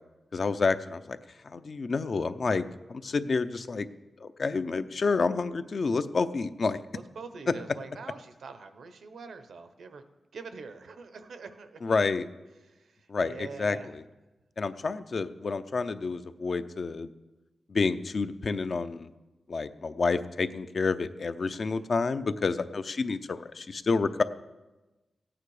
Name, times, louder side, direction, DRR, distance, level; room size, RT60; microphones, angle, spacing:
voice 1, 0.3-1.2 1.4-3.9 4.2-6.8 11.8-12.2 13.1-13.8 14.6-17.1 17.7-19.1 19.5-24.2, left 4 dB, 50° left, 11 dB, 0.6 m, -29 dB
voice 2, 6.9-10.0 10.3-12.1 12.6-13.9 21.5-22.0, right 4 dB, 85° right, 9 dB, 0.9 m, -45 dB
16.5 x 8.9 x 4.9 m, 1.1 s
wide cardioid pair, 140°, 0 cm